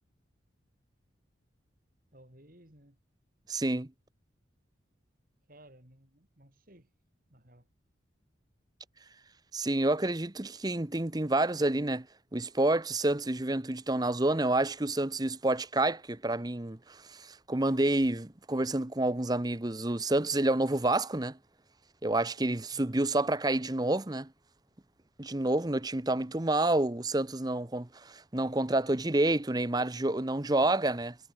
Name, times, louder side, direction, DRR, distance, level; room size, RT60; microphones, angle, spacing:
voice 1, 2.1-3.0 5.5-6.9 7.3-7.7 22.7-23.0, right 1 dB, 45° right, 4.8 m, -57 dB
voice 2, 3.5-3.9 9.5-12.1 12.3-21.4 22.0-24.3 25.2-31.2, right 2 dB, 20° right, 0.8 m, -29 dB
head